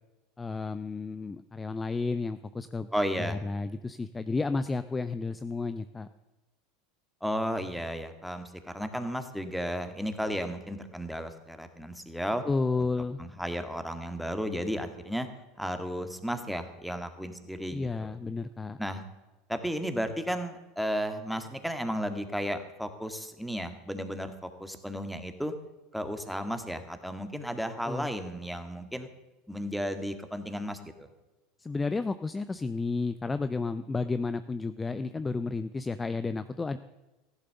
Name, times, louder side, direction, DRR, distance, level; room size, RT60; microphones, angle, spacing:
voice 1, 0.4-2.9 3.2-6.1 12.5-13.2 17.7-18.8 27.9-28.1 31.6-36.8, left 3 dB, 15° left, 12 dB, 0.6 m, -32 dB
voice 2, 2.9-3.4 7.2-12.4 12.8-12.9 13.2-15.3 15.6-18.2 18.8-19.0 19.5-25.5 25.9-29.1 29.5-30.9, equal, ahead, 8 dB, 1.9 m, -34 dB
15.0 x 11.5 x 6.9 m, 1.1 s
hypercardioid pair, 80°, 0 cm